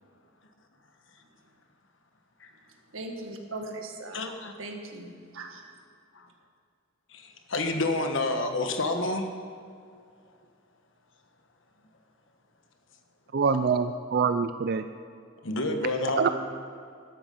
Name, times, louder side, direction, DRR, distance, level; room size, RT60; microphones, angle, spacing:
voice 1, 2.9-4.2 4.6-5.7, right 2 dB, 75° right, 3 dB, 1.7 m, -39 dB
voice 2, 4.1-4.5 6.1-6.3 7.1-9.3 15.4-16.3, left 2 dB, 60° left, 5 dB, 1.3 m, -29 dB
voice 3, 13.3-14.8 16.2-16.3, right 5 dB, 50° right, 10 dB, 0.4 m, -25 dB
12.5 x 12.0 x 5.4 m, 2.3 s
head